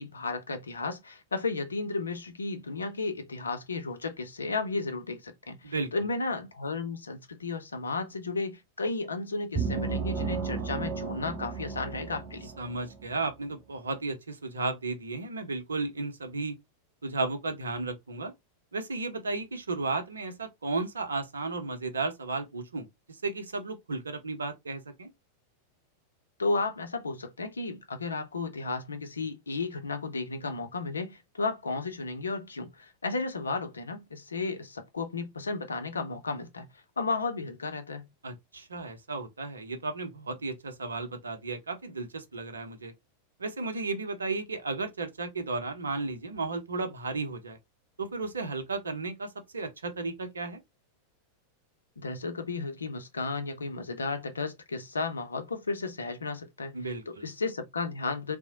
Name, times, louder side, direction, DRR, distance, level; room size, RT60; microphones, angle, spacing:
voice 1, 0.0-12.5 26.4-36.7 37.0-38.1 52.0-58.4, left 3 dB, 75° left, 0.5 m, -33 dB
sound 1, 9.6-13.1, right 5 dB, 30° right, 0.6 m, -33 dB
voice 2, 12.6-16.5 17.0-18.3 18.7-25.1 38.2-42.9 43.4-47.6 48.0-50.6 56.7-57.2, right 3 dB, 75° right, 0.6 m, -34 dB
2.8 x 2.0 x 2.7 m
figure-of-eight pair, 90°, 0 cm